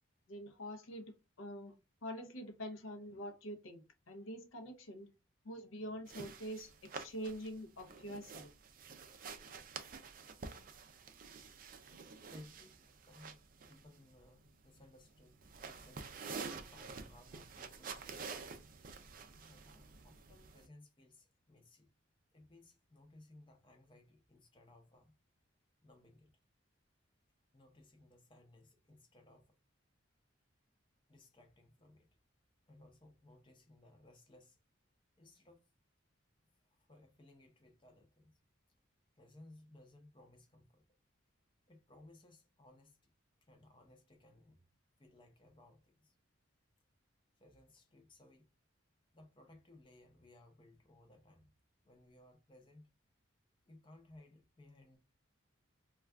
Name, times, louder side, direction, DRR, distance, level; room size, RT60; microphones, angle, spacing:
voice 1, 0.3-5.1 5.4-8.5, equal, 75° left, 0.6 m, -46 dB
sound 1, 6.1-20.6, right 5 dB, 40° right, 0.4 m, -49 dB
voice 2, 10.5-10.9 12.3-18.2 19.4-21.9 22.3-25.2 25.8-26.3 27.5-29.6 31.1-32.1 32.7-34.6 35.2-35.7 36.7-38.4 39.2-40.8 41.7-43.0 43.4-44.6 45.0-46.1 47.4-48.5 49.1-51.5 51.8-52.9 53.7-55.0, left 1 dB, 25° left, 0.6 m, -61 dB
2.4 x 2.2 x 3.4 m
head